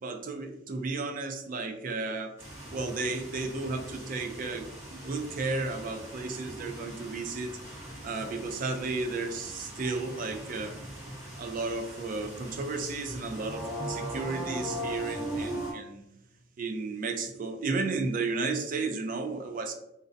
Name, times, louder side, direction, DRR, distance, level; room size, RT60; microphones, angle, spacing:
voice 1, 0.0-2.3 2.7-7.6 8.0-10.8 11.3-16.1 16.6-19.7, right 3 dB, 40° right, 5 dB, 0.3 m, -33 dB
sound 1, 2.4-15.7, equal, 15° right, 0.7 m, -40 dB
2.5 x 2.0 x 2.5 m, 0.83 s
head